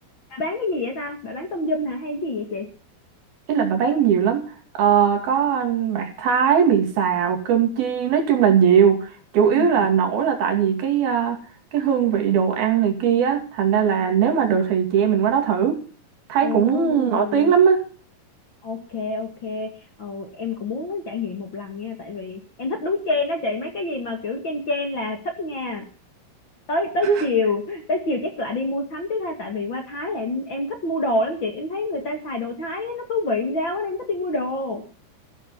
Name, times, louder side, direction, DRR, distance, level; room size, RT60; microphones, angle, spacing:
voice 1, 0.3-2.7 9.5-9.9 16.4-17.5 18.6-19.7 20.0-25.8 26.7-34.8, left 2 dB, 40° left, 2.2 m, -27 dB
voice 2, 3.5-4.4 4.8-11.4 11.7-15.8 16.3-17.9 27.0-27.2, right 7 dB, 75° right, 4.4 m, -19 dB
14.5 x 12.0 x 5.6 m
omnidirectional pair, 4.4 m